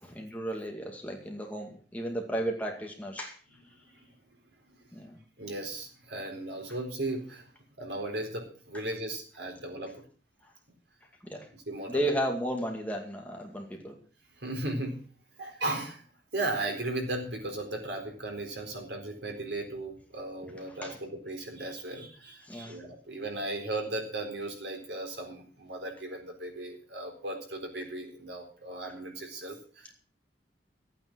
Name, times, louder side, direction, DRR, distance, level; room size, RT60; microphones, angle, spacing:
voice 1, 0.0-3.4 4.9-5.2 11.2-11.5 11.9-14.0 20.5-21.0 22.5-22.8, right 1 dB, 10° left, 1 dB, 2.2 m, -34 dB
voice 2, 5.4-7.5 7.8-10.0 11.7-12.2 14.4-15.1 15.4-16.0 16.3-29.9, right 2 dB, 70° right, 3 dB, 4.1 m, -36 dB
14.0 x 9.1 x 6.2 m, 0.41 s
head